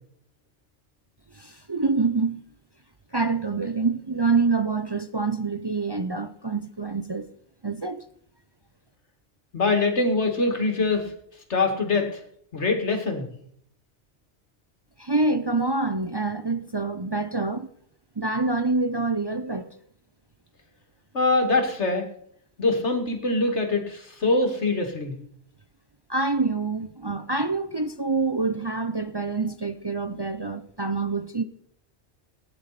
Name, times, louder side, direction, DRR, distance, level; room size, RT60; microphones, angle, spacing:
voice 1, 1.3-2.4 3.1-7.3 7.6-8.0 15.0-17.7 18.2-19.7 26.1-31.4, right 3 dB, 25° right, 0.6 m, -26 dB
voice 2, 9.5-11.1 11.5-12.2 12.5-13.3 21.1-22.1 22.6-25.2, left 3 dB, 85° left, 2.5 m, -23 dB
18.5 x 10.0 x 4.1 m
omnidirectional pair, 1.1 m